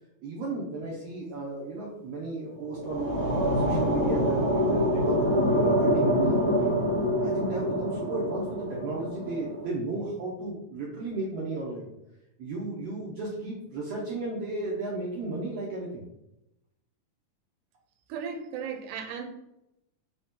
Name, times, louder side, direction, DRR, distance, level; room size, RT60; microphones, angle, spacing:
voice 1, 0.2-6.8 7.2-11.9 12.4-16.0, right 2 dB, 75° right, 1.5 m, -34 dB
sound 1, 2.5-9.6, equal, 35° left, 0.7 m, -26 dB
voice 2, 18.1-19.3, right 6 dB, 90° right, 2.1 m, -35 dB
5.0 x 2.8 x 3.6 m
omnidirectional pair, 3.6 m